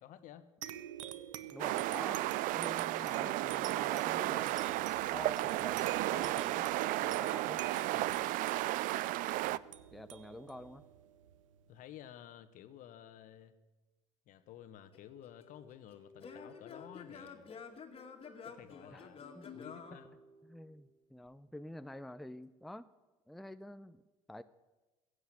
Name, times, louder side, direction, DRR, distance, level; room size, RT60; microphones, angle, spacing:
voice 1, 0.0-0.5 7.9-8.4 11.7-13.5 14.3-17.5 18.5-20.2, left 10 dB, 55° left, 12 dB, 1.2 m, -53 dB
sound 1, 0.6-11.7, right 11 dB, 85° right, 0.7 m, -48 dB
voice 2, 1.5-4.7 5.1-6.7 7.0-7.6 9.5-9.6 9.9-10.8 18.9-19.1 19.3-19.5 20.4-22.9 23.3-24.0 24.3-24.4, left 1 dB, ahead, 12 dB, 0.5 m, -48 dB
sound 2, 1.6-9.6, right 16 dB, 55° right, 0.4 m, -33 dB
Singing / Plucked string instrument, 14.9-20.8, left 5 dB, 35° left, 2.0 m, -51 dB
15.5 x 8.1 x 8.9 m, 1.1 s
hypercardioid pair, 70°, 16 cm